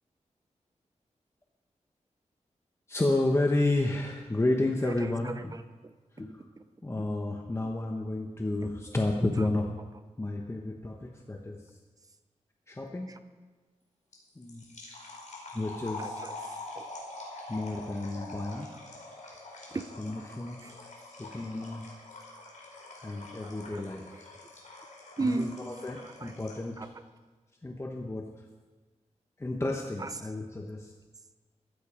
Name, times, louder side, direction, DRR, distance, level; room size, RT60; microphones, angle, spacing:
voice 1, 2.9-5.5 6.1-6.4 6.8-9.7 10.2-11.7 12.7-13.1 14.4-14.6 15.5-16.2 17.5-18.7 20.0-20.7 21.2-21.9 23.0-24.3 25.2-26.9 27.6-28.3 29.4-30.9, left 2 dB, 20° left, 1.2 m, -31 dB
voice 2, 4.8-5.9 8.6-8.7 9.4-9.5 13.1-13.2 16.0-16.9 18.7-18.8 19.7-19.9 20.6-20.8 23.4-23.8 24.1-24.2 25.2-25.6 26.0-26.3 26.8-26.9 30.0-30.1, right 2 dB, 30° right, 0.8 m, -36 dB
sound 1, 14.1-26.7, left 2 dB, 80° left, 4.3 m, -45 dB
15.5 x 12.0 x 5.1 m
wide cardioid pair, 95°, 13 cm